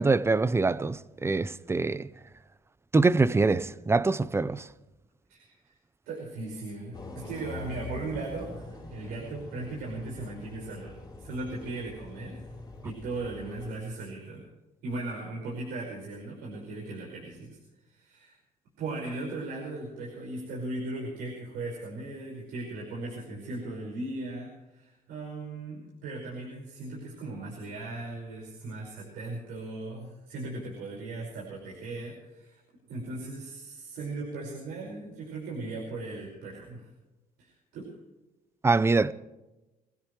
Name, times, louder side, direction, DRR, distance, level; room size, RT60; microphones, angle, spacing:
voice 1, 0.0-2.1 2.9-4.7 38.6-39.1, right 3 dB, 15° right, 0.7 m, -24 dB
voice 2, 5.3-5.7 6.1-12.5 12.8-14.4 14.8-17.6 17.9-18.4 18.8-32.6 32.9-36.9 37.4-37.8, right 2 dB, 85° right, 5.3 m, -38 dB
sound 1, 6.9-13.7, left 2 dB, 25° left, 3.8 m, -44 dB
24.0 x 16.0 x 3.2 m
cardioid pair, 105°, 15 cm